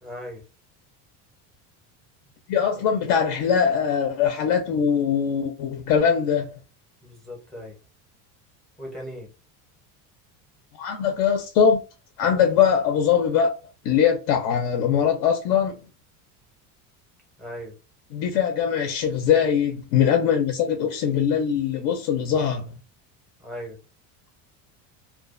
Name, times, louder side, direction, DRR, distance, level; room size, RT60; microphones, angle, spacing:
voice 1, 0.0-0.4 7.0-7.8 8.8-9.3 17.4-17.8 23.4-23.8, equal, ahead, 0.6 m, -38 dB
voice 2, 2.5-6.5 10.7-11.8 12.2-13.5 13.8-15.8 18.1-22.7, left 7 dB, 55° left, 0.5 m, -21 dB
2.3 x 2.3 x 2.4 m
cardioid pair, 155°, 41 cm